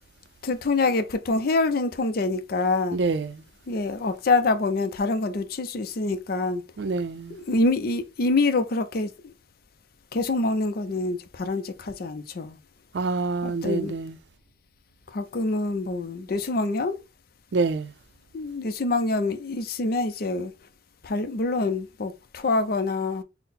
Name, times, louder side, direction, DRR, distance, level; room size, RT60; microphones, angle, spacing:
voice 1, 0.4-3.0 3.7-6.6 7.3-9.3 10.1-12.6 13.4-13.9 15.1-17.0 18.3-20.5 21.0-23.2, left 3 dB, 55° left, 0.5 m, -26 dB
voice 2, 2.9-3.4 6.8-7.4 12.9-14.2 17.5-17.9, right 3 dB, 70° right, 0.4 m, -26 dB
3.9 x 2.1 x 4.1 m
head